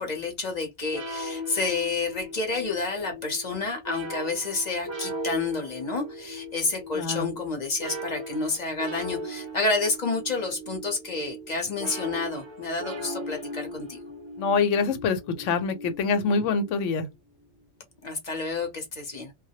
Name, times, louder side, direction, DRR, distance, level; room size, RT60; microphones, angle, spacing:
voice 1, 0.0-14.0 18.0-19.3, left 3 dB, 40° left, 0.7 m, -29 dB
sound 1, 0.9-17.1, equal, 35° right, 0.4 m, -38 dB
voice 2, 6.9-7.3 14.4-17.1, left 5 dB, 75° left, 0.9 m, -25 dB
2.2 x 2.0 x 2.7 m
omnidirectional pair, 1.3 m